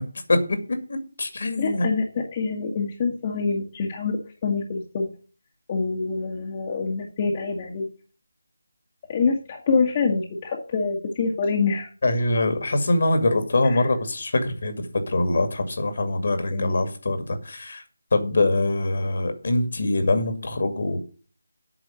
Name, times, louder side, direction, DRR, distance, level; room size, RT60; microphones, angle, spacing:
voice 1, 0.3-1.9 12.0-17.8 18.1-21.0, left 2 dB, 45° left, 7 dB, 2.3 m, -23 dB
voice 2, 1.6-5.1 5.7-7.8 9.1-11.9 13.6-13.8 16.5-16.9, left 4 dB, 25° left, -1 dB, 1.7 m, -26 dB
9.0 x 6.1 x 8.1 m, 0.38 s
figure-of-eight pair, 155°, 0 cm